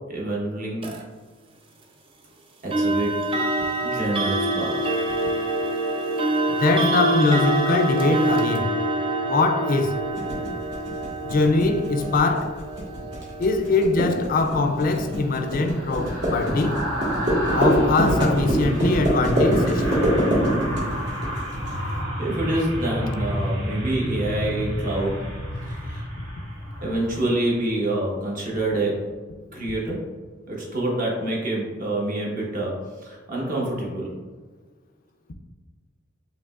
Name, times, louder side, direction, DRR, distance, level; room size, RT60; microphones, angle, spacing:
voice 1, 0.1-0.9 2.6-3.1 3.8-4.8 21.7-25.2 25.6-26.1 26.8-29.0 29.5-30.0 30.5-32.7 33.0-34.1, right 1 dB, 45° right, 1.0 m, -27 dB
sound 1, 0.8-1.0 2.7-15.5, right 1 dB, 25° right, 0.3 m, -26 dB
voice 2, 6.5-8.7 9.2-10.0 11.2-12.6 13.4-16.8 17.5-20.1, left 3 dB, 45° left, 0.4 m, -22 dB
sound 2, 10.2-21.7, equal, 60° right, 1.4 m, -24 dB
sound 3, 14.3-27.7 28.0-28.2, equal, 80° right, 1.1 m, -30 dB
5.0 x 3.0 x 2.3 m
head